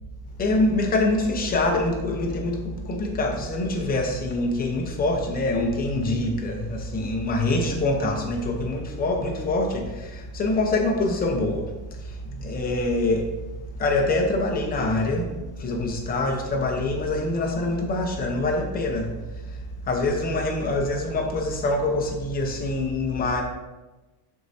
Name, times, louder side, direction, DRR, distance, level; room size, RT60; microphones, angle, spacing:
voice 1, 0.4-11.6 12.4-13.2 13.8-15.3 15.6-19.1 19.9-23.4, left 2 dB, 20° left, 1 dB, 0.8 m, -25 dB
11.5 x 4.7 x 2.7 m, 1.1 s
cardioid pair, 175°, 47 cm